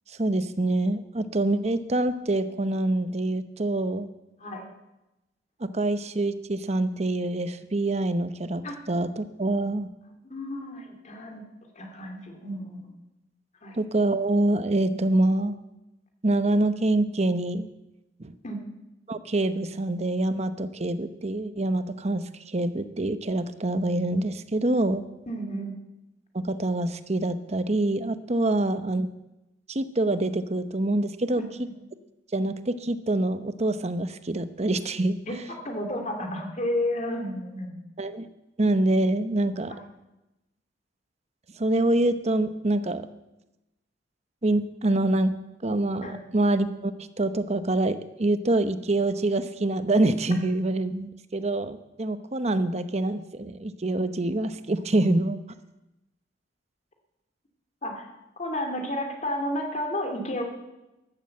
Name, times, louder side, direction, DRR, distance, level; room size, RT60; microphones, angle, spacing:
voice 1, 0.1-4.1 5.6-8.6 8.9-9.9 13.7-15.6 16.2-17.7 18.2-18.3 19.1-25.0 26.3-29.1 29.7-31.4 32.3-35.4 38.0-38.3 38.6-39.7 41.6-43.0 44.4-45.3 45.6-55.4, right 2 dB, 35° right, 11 dB, 0.9 m, -25 dB
voice 2, 10.2-11.4 11.7-12.9 13.6-13.8 18.4-18.6 25.3-25.8 31.4-31.5 35.3-35.4 35.6-37.7 39.7-39.8 46.0-46.2 57.8-58.1 58.4-60.4, left 1 dB, 40° left, 3 dB, 2.5 m, -31 dB
14.0 x 12.0 x 7.7 m, 0.97 s
head